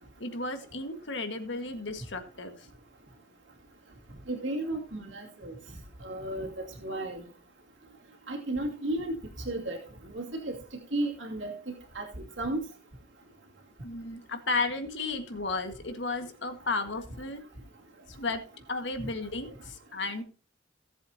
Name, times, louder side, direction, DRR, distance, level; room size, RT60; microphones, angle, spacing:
voice 1, 0.2-2.7 13.8-17.4 18.1-18.4 18.7-20.2, left 3 dB, 65° left, 7 dB, 1.7 m, -33 dB
voice 2, 4.3-5.5 6.0-7.2 8.3-9.1 9.5-9.8 10.1-10.6 10.9-12.6 19.0-19.1, right 1 dB, 75° right, 0 dB, 2.5 m, -34 dB
17.5 x 7.8 x 2.8 m, 0.36 s
head